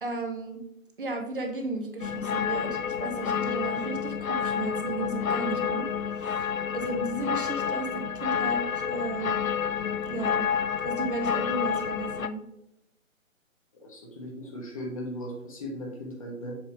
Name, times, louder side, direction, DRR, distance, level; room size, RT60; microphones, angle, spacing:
voice 1, 0.0-0.6 1.0-5.9 6.2-6.4 6.7-9.4 10.1-10.5 10.8-12.4, right 2 dB, 40° right, 4 dB, 0.9 m, -34 dB
sound 1, 2.0-12.3, left 7 dB, 80° left, 0.6 m, -29 dB
voice 2, 13.8-16.6, equal, 25° left, -1 dB, 1.0 m, -37 dB
7.3 x 3.1 x 4.8 m, 0.80 s
figure-of-eight pair, 145°, 41 cm